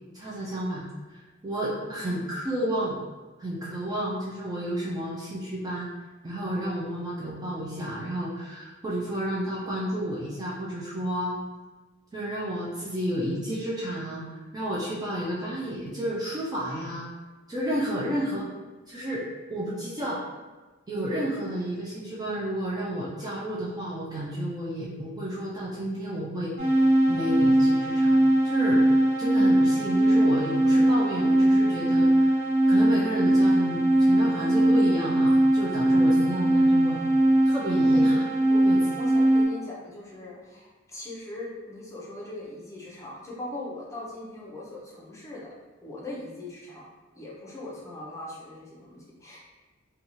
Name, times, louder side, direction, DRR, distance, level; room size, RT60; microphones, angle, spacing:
voice 1, 0.1-3.0 3.4-5.9 6.2-11.4 12.1-14.3 14.5-17.1 17.5-18.5 18.9-19.2 19.5-20.2 20.9-26.5 27.1-28.2 28.4-28.8 29.2-32.4 32.7-37.0 37.4-38.2 38.6-38.8, equal, 20° right, -6 dB, 0.4 m, -31 dB
voice 2, 1.8-2.2 37.8-38.2 38.5-38.6 39.0-45.5 45.8-46.9 47.1-49.4, left 1 dB, 15° left, -6 dB, 0.6 m, -40 dB
sound 1, 26.6-39.4, right 1 dB, 50° right, 0.8 m, -21 dB
2.6 x 2.3 x 2.9 m, 1.2 s
head